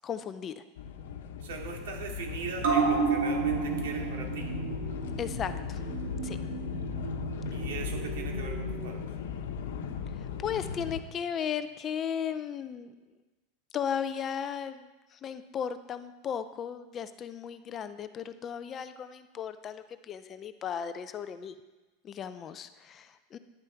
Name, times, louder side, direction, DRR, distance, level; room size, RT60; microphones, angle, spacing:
voice 1, 0.0-0.6 5.2-5.8 6.2-6.4 10.2-12.9 13.7-21.6 22.0-23.4, left 8 dB, 20° left, 11 dB, 0.4 m, -36 dB
sound 1, 0.8-11.0, left 7 dB, 75° left, 1.0 m, -37 dB
voice 2, 1.4-4.5 7.5-9.0, right 5 dB, 75° right, 1 dB, 2.4 m, -40 dB
sound 2, 2.6-9.5 9.9-10.0, right 5 dB, 60° right, 2.9 m, -32 dB
11.0 x 10.5 x 4.5 m, 1.2 s
supercardioid pair, 175°, 0 cm